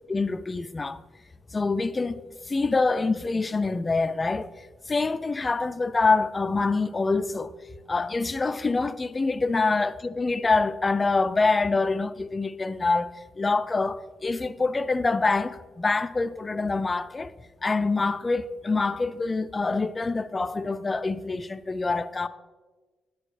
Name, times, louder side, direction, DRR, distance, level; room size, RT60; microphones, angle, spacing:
voice 1, 0.1-1.0 1.5-2.2 2.5-4.5 4.9-7.5 7.9-13.1 13.4-17.3 17.6-22.3, left 3 dB, 30° left, 0.3 m, -25 dB
10.5 x 6.9 x 3.2 m
supercardioid pair, 65°, 0 cm